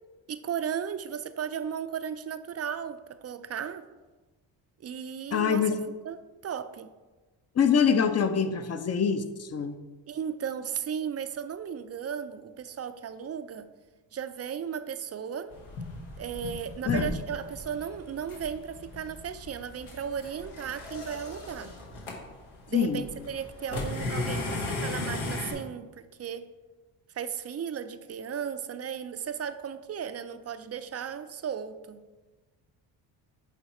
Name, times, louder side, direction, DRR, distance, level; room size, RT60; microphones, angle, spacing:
voice 1, 0.3-3.8 4.8-5.7 6.0-6.2 6.4-6.9 10.1-13.7 14.1-15.5 16.2-21.7 22.7-26.5 27.1-32.0, right 8 dB, 35° right, 11 dB, 0.4 m, -35 dB
voice 2, 5.3-5.7 7.6-9.7 16.9-17.1 22.7-23.0, left 7 dB, 35° left, 10 dB, 0.6 m, -25 dB
sound 1, 15.5-25.5, left 2 dB, 80° left, 1.4 m, -36 dB
8.2 x 3.0 x 4.2 m, 1.2 s
supercardioid pair, 60°, 47 cm